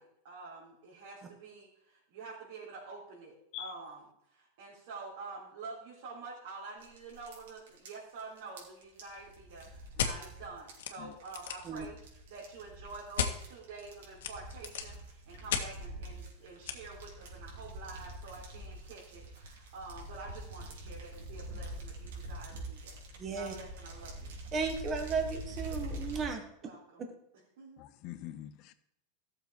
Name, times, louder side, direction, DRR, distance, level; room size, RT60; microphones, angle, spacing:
voice 1, 0.0-12.0 12.3-24.4 26.6-27.0 27.6-27.8, right 3 dB, 60° right, 3.7 m, -48 dB
sound 1, 6.8-26.3, right 1 dB, 80° right, 3.7 m, -45 dB
sound 2, 10.0-10.1 10.8-10.9 11.2-11.7 13.2-13.3 14.2-14.9 15.5-15.7 16.7-16.8, left 8 dB, 90° left, 1.6 m, -32 dB
voice 2, 23.2-23.5 24.5-26.4 27.0-27.1, right 5 dB, 20° right, 1.5 m, -34 dB
voice 3, 27.8-28.7, left 13 dB, 40° left, 0.8 m, -44 dB
15.0 x 7.1 x 4.7 m
supercardioid pair, 170°, 0 cm